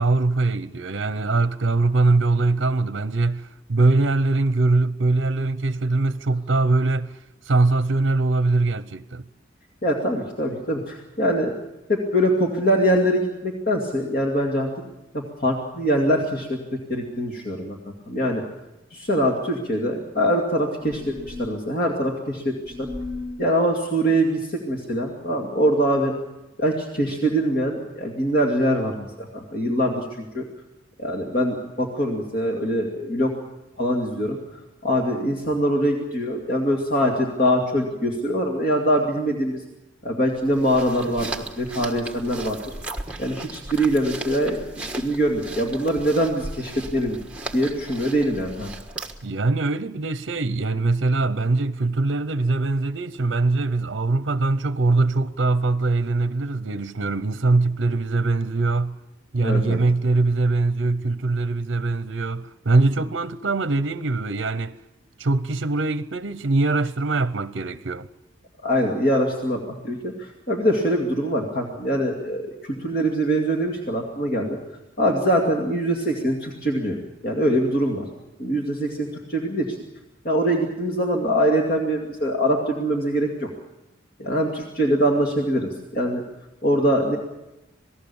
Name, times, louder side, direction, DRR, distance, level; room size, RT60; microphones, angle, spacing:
voice 1, 0.0-7.2 7.5-9.3 49.2-59.0 59.3-64.7 65.2-68.1, right 3 dB, 65° right, 0.7 m, -22 dB
voice 2, 9.8-11.5 11.9-14.7 15.1-18.4 18.9-22.9 23.4-26.1 26.6-30.1 30.3-30.4 31.0-33.3 33.8-34.4 34.8-39.6 40.0-41.3 41.6-42.6 43.2-47.2 47.5-48.7 59.4-59.8 68.6-74.6 75.0-77.0 77.2-78.1 78.4-79.8 80.2-83.5 84.2-86.2 86.6-87.2, equal, 50° left, 2.4 m, -23 dB
sound 1, 20.8-21.6 22.7-23.4, left 3 dB, 20° right, 1.2 m, -35 dB
sound 2, 40.3-49.4, right 2 dB, 5° right, 1.4 m, -36 dB
27.5 x 18.5 x 7.1 m
head